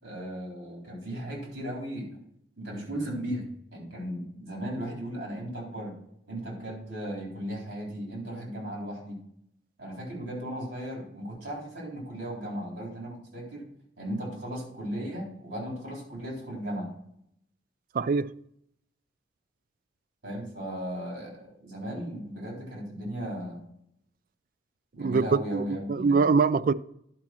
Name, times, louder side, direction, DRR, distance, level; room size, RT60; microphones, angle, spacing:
voice 1, 0.0-2.1 2.6-3.4 3.7-6.0 6.3-9.2 9.8-13.7 14.0-16.9 20.2-23.6 24.9-26.3, equal, 80° right, 3.8 m, -36 dB
voice 2, 17.9-18.3 25.0-26.7, right 4 dB, 50° right, 0.3 m, -24 dB
10.5 x 5.2 x 6.0 m
head